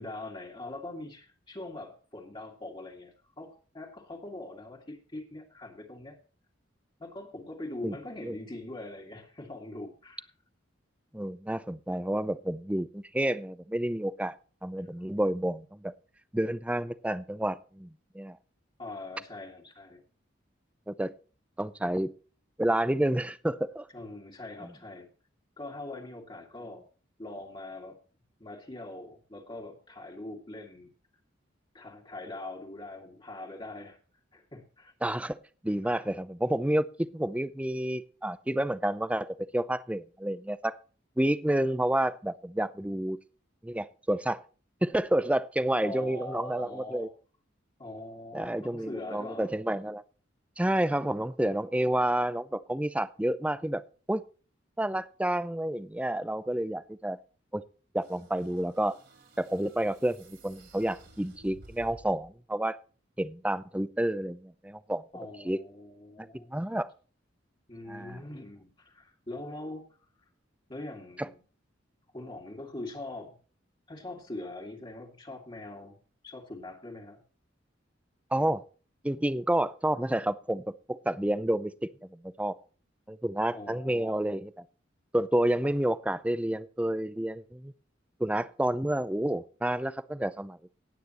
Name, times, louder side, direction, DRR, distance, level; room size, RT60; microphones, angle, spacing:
voice 1, 0.0-6.2 7.0-10.3 18.8-20.0 23.9-25.1 25.6-26.8 27.2-28.0 28.4-30.9 31.7-34.0 34.3-34.9 35.8-36.1 45.8-47.1 47.8-49.6 65.1-66.5 67.7-70.1 70.7-71.4 72.1-73.4 73.9-76.0 76.2-77.2 83.5-84.3 85.6-85.7, left 2 dB, 25° left, 2.2 m, -42 dB
voice 2, 11.1-14.3 14.6-15.9 16.3-18.4 20.9-21.1 21.6-22.1 22.6-23.9 35.0-35.4 35.6-40.8 41.2-43.2 43.6-44.4 44.8-47.1 48.3-50.0 50.6-53.8 54.1-54.2 54.8-57.2 57.5-57.6 57.9-59.0 59.4-62.8 63.2-65.0 65.4-65.6 66.2-66.9 67.9-68.2 71.2-71.3 78.3-78.6 79.0-81.7 82.1-82.6 83.1-84.5 85.1-87.7 88.2-90.8, right 1 dB, 5° right, 0.6 m, -29 dB
sound 1, 58.0-62.3, right 1 dB, 60° right, 4.6 m, -55 dB
17.5 x 9.2 x 3.0 m
head